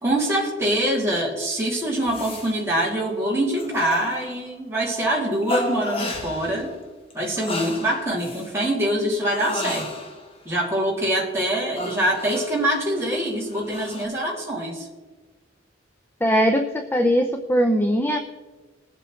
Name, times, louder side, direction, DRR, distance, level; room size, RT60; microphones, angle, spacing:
voice 1, 0.0-6.7 7.1-9.9 10.4-14.9, right 1 dB, 15° right, -5 dB, 2.7 m, -24 dB
sound 1, 2.1-2.6 2.9-3.2 3.6-4.6 5.4-6.7 7.1-8.5 9.3-10.4 11.7-14.0, left 1 dB, 30° left, 1.2 m, -33 dB
voice 2, 16.2-18.2, equal, 10° left, 4 dB, 0.5 m, -20 dB
20.5 x 7.9 x 3.2 m, 1.3 s
head